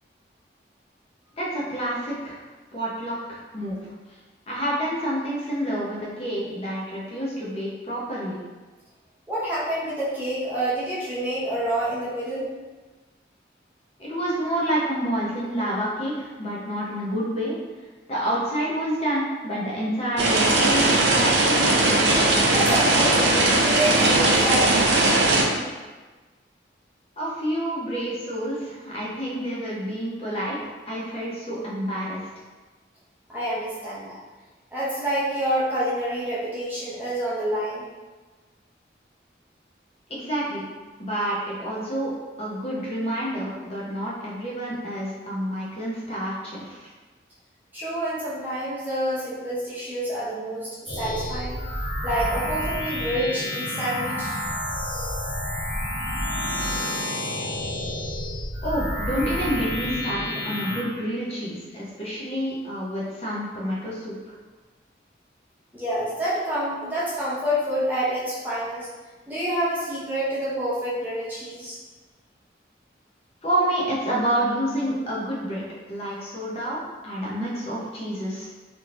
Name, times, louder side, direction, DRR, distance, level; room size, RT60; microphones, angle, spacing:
voice 1, 1.4-2.4 2.7-3.8 4.5-8.4 14.0-17.6 18.1-21.5 27.2-32.2 40.1-40.6 41.0-42.1 42.4-46.9 58.6-64.2 73.4-75.6 75.9-78.5, right 1 dB, 35° left, -6 dB, 0.7 m, -28 dB
voice 2, 9.3-12.5 22.5-24.8 33.3-34.2 34.7-37.8 47.7-51.6 52.0-54.4 65.7-68.9 69.3-71.8, right 1 dB, 10° right, -9 dB, 0.6 m, -27 dB
sound 1, 20.2-25.4, right 2 dB, 75° right, 0.6 m, -19 dB
sound 2, 50.9-60.8, left 1 dB, 75° left, 1.2 m, -29 dB
3.4 x 3.0 x 2.5 m, 1.3 s
head